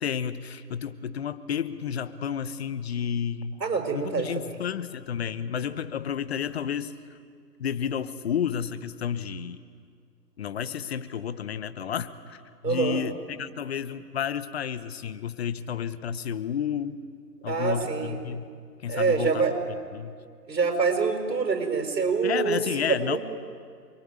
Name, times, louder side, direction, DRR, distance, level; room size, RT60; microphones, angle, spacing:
voice 1, 0.0-3.6 3.9-7.2 7.6-9.6 10.4-17.0 17.4-18.5 18.8-19.5 19.9-20.1 22.2-23.2, left 8 dB, 40° left, 14 dB, 1.0 m, -31 dB
voice 2, 3.6-4.5 12.6-13.0 17.5-18.2 18.9-19.5 20.5-23.2, right 5 dB, 80° right, 5 dB, 6.1 m, -26 dB
28.0 x 22.5 x 9.5 m, 2.1 s
hypercardioid pair, 145°, 50 cm